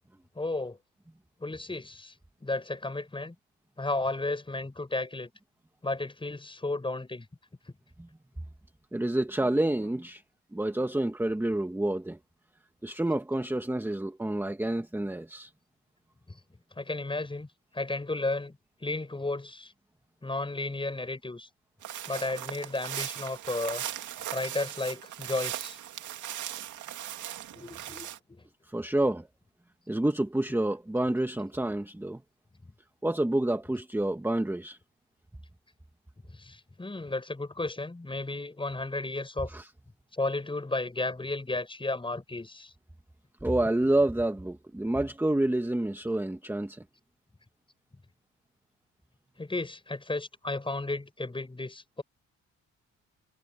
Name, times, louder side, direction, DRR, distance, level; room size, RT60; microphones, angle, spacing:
voice 1, 0.3-0.8 1.4-2.1 2.4-3.3 3.8-5.3 5.8-7.3 9.8-9.9 16.7-17.5 17.7-19.7 20.2-21.5 22.1-23.8 24.3-25.8 27.5-28.4 33.6-33.8 36.3-39.5 40.1-42.7 49.4-52.0, left 2 dB, 15° left, 6.7 m, -33 dB
voice 2, 8.9-10.2 10.5-12.2 12.8-15.5 28.7-29.3 29.9-32.2 33.0-34.8 39.5-39.7 43.4-46.8, right 1 dB, 5° right, 1.8 m, -28 dB
sound 1, 21.8-28.2, right 12 dB, 75° right, 2.6 m, -38 dB
cardioid pair, 90°, 30 cm